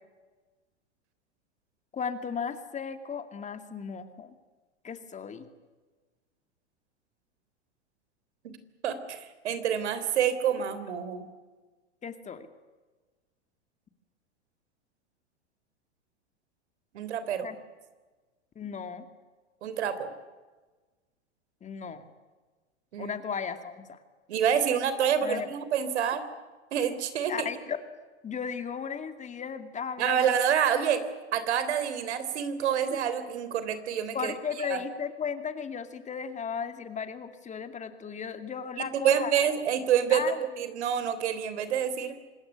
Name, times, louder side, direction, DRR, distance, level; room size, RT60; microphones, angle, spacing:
voice 1, 1.9-4.3 4.8-5.5 12.0-12.5 17.4-17.6 18.6-19.0 21.6-22.0 23.0-24.0 25.2-25.5 27.3-27.8 28.2-30.4 32.9-33.0 34.1-39.3 40.1-40.4, left 6 dB, 20° left, 8 dB, 2.3 m, -35 dB
voice 2, 8.8-11.3 16.9-17.5 19.6-20.1 22.9-23.2 24.3-26.2 26.7-27.3 30.0-31.0 31.3-34.3 34.6-34.8 39.0-42.2, right 8 dB, 75° right, 12 dB, 3.7 m, -27 dB
26.0 x 20.0 x 9.9 m, 1.3 s
hypercardioid pair, 115°, 34 cm